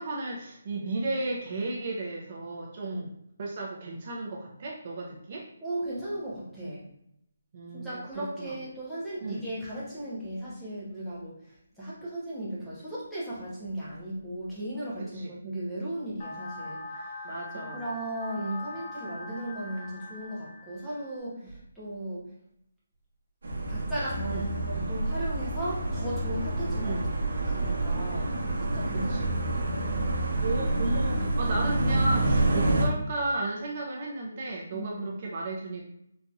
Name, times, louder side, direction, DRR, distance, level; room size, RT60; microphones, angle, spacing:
voice 1, 0.0-3.1 3.4-5.5 7.5-8.5 9.2-9.4 17.2-17.8 24.3-24.4 26.8-27.1 28.9-29.3 30.4-35.9, right 2 dB, 35° right, -2 dB, 0.5 m, -34 dB
voice 2, 5.6-6.8 7.7-11.4 11.8-16.8 17.5-22.2 23.7-27.1 27.4-28.4 28.7-29.8 34.7-35.1, right 1 dB, ahead, -11 dB, 0.8 m, -36 dB
sound 1, 16.2-21.2, left 3 dB, 35° left, 0.6 m, -42 dB
sound 2, 23.4-32.9, right 2 dB, 70° right, 0.9 m, -28 dB
3.9 x 2.9 x 2.3 m, 0.75 s
hypercardioid pair, 170°, 0 cm